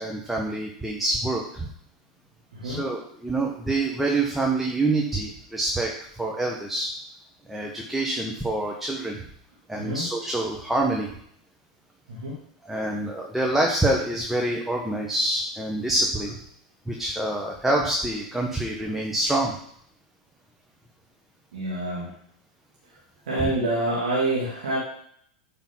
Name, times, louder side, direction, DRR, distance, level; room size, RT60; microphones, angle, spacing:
voice 1, 0.0-1.7 2.6-5.9 6.2-6.9 7.5-9.2 9.7-11.1 12.6-16.4 16.9-19.5 23.4-23.5, right 2 dB, 5° right, -1 dB, 1.3 m, -26 dB
voice 2, 2.5-2.8 9.8-10.1 12.1-12.4 21.5-22.1 23.3-24.8, right 1 dB, 75° right, -5 dB, 2.4 m, -27 dB
8.8 x 4.0 x 5.7 m, 0.66 s
hypercardioid pair, 95°, 4 cm